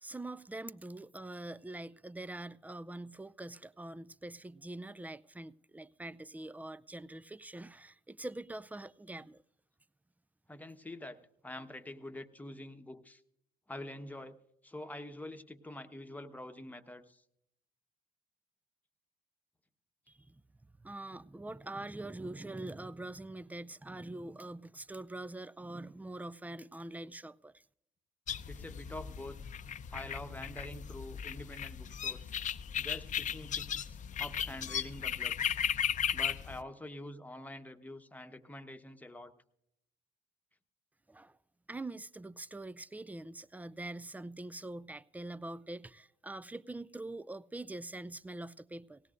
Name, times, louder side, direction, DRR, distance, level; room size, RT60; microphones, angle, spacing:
voice 1, 0.0-9.4 20.1-20.4 20.8-27.6 41.1-41.4 41.7-49.0, right 2 dB, 10° right, 0.4 m, -44 dB
voice 2, 10.5-13.2 13.7-14.4 14.6-17.2 28.5-29.4 29.9-32.3 32.8-35.6 36.1-39.3, left 1 dB, 10° left, 1.1 m, -46 dB
sound 1, 28.3-36.6, left 9 dB, 45° left, 0.7 m, -36 dB
19.0 x 17.0 x 2.5 m
hypercardioid pair, 55°, 17 cm